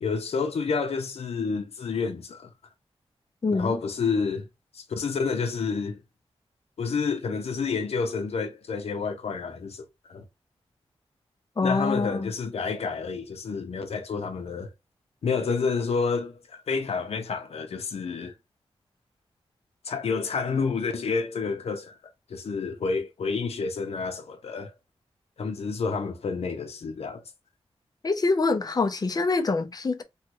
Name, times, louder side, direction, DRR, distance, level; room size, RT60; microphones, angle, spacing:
voice 1, 0.0-2.5 3.5-4.5 4.7-6.0 6.8-10.2 11.6-14.7 15.2-18.3 19.8-22.0 22.3-24.7 25.4-27.2, left 5 dB, 75° left, 0.7 m, -29 dB
voice 2, 3.4-3.8 11.6-12.3 28.0-30.0, left 3 dB, 40° left, 0.6 m, -25 dB
3.2 x 2.3 x 3.0 m
wide cardioid pair, 95°, 11 cm